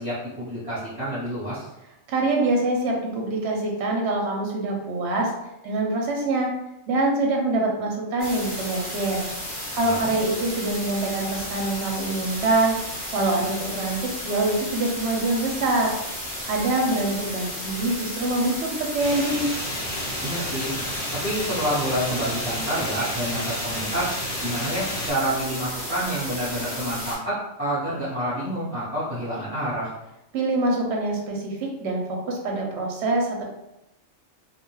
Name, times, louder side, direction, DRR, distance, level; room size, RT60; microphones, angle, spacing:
voice 1, 0.0-1.7 9.8-10.1 20.2-20.7 21.2-24.1 24.4-29.9, right 1 dB, 10° right, -12 dB, 0.9 m, -28 dB
voice 2, 2.1-5.3 5.6-6.5 6.9-9.3 9.7-14.0 14.2-16.0 16.4-19.5 30.3-33.4, right 2 dB, 70° right, 0 dB, 0.8 m, -25 dB
sound 1, 8.2-27.2, equal, 15° left, 1.0 m, -33 dB
sound 2, 19.0-25.1, left 1 dB, 50° left, 1.1 m, -32 dB
2.4 x 2.1 x 3.1 m, 0.91 s
omnidirectional pair, 1.3 m